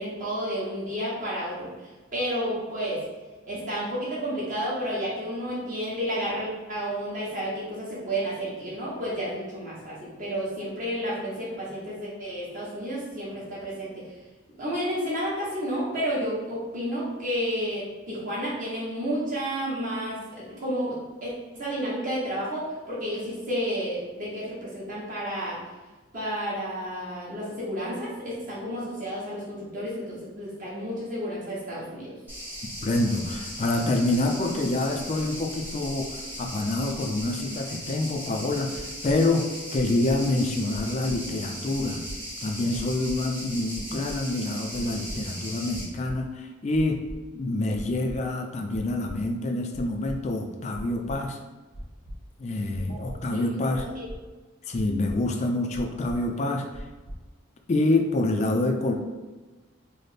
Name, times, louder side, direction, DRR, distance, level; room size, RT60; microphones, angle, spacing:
voice 1, 0.0-1.7 2.1-3.0 3.5-14.0 14.6-25.6 26.1-32.1 52.9-53.0 53.3-54.0, equal, 40° right, -7 dB, 0.9 m, -31 dB
sound 1, 32.3-45.8, equal, 10° right, 0.9 m, -38 dB
voice 2, 32.8-42.0 42.4-47.0 47.3-51.4 52.4-53.9 54.7-56.9 57.7-58.9, left 2 dB, 35° left, 4 dB, 0.3 m, -27 dB
sound 2, 38.7-39.2 39.7-40.2 40.7-41.2 41.7-42.2 42.7-43.2 43.7-44.2 44.7-45.1 45.7-46.1 46.7-47.2 47.7-48.2 48.7-49.1 49.7-50.2 50.7-51.2 51.7-52.1 52.7-53.1 53.7-54.2 54.7-55.1 55.7-56.2 56.7-57.2, equal, 90° left, 1.0 m, -39 dB
3.3 x 2.1 x 4.0 m, 1.2 s
head